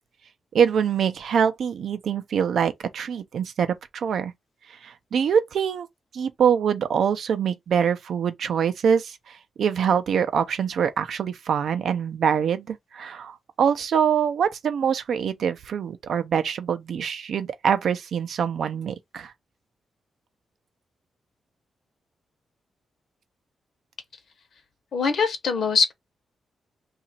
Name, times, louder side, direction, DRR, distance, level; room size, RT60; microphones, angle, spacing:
voice 1, 0.5-4.3 4.7-5.9 6.1-19.3, right 7 dB, 60° right, 0.5 m, -24 dB
voice 2, 24.9-25.9, left 5 dB, 50° left, 0.9 m, -22 dB
2.9 x 2.4 x 4.2 m
wide cardioid pair, 175°, 0 cm